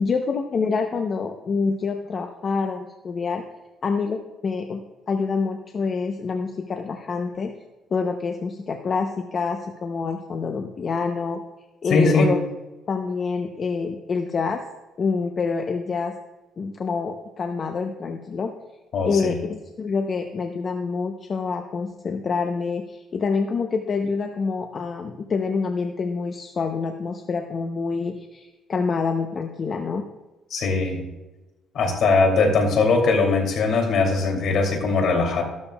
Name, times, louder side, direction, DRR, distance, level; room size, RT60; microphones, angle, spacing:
voice 1, 0.0-3.4 3.8-4.8 5.1-7.5 7.9-11.4 11.8-12.4 12.9-14.6 15.0-16.1 16.6-18.5 19.0-30.1, left 4 dB, 35° left, 4 dB, 0.7 m, -26 dB
voice 2, 11.9-12.3 18.9-19.4 30.5-31.0 31.7-35.4, left 3 dB, 60° left, 1 dB, 2.7 m, -20 dB
14.0 x 12.5 x 2.3 m, 1.1 s
cardioid pair, 150°, 0 cm